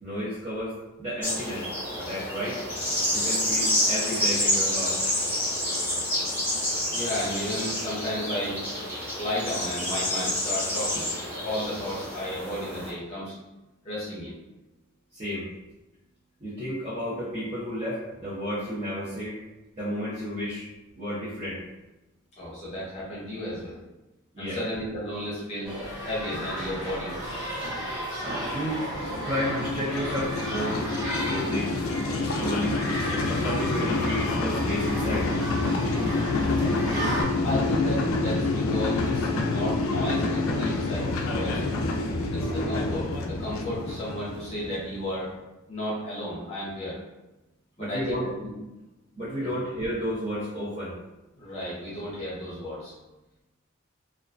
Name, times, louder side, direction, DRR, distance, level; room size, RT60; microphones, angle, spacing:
voice 1, 0.0-2.6 3.1-5.0 15.1-15.5 16.4-19.4 19.7-20.7 20.9-21.6 24.3-24.6 28.5-28.9 29.2-30.9 31.2-31.7 32.2-32.8 33.3-35.3 47.8-48.3 49.2-51.0, equal, 30° right, -12 dB, 0.7 m, -32 dB
sound 1, 1.2-12.9, left 1 dB, 10° left, 0.9 m, -28 dB
voice 2, 6.9-8.6 9.2-13.3 13.8-14.3 22.4-23.8 24.4-25.7 26.0-27.3 37.3-41.6 42.3-45.3 45.7-47.0 47.8-48.5 49.4-49.5 51.3-52.9, left 1 dB, 30° left, -8 dB, 0.6 m, -33 dB
sound 2, 25.6-37.2, equal, 10° right, 1.1 m, -34 dB
sound 3, 28.4-45.0, left 3 dB, 75° left, 0.3 m, -28 dB
2.3 x 2.2 x 2.4 m, 1.0 s
head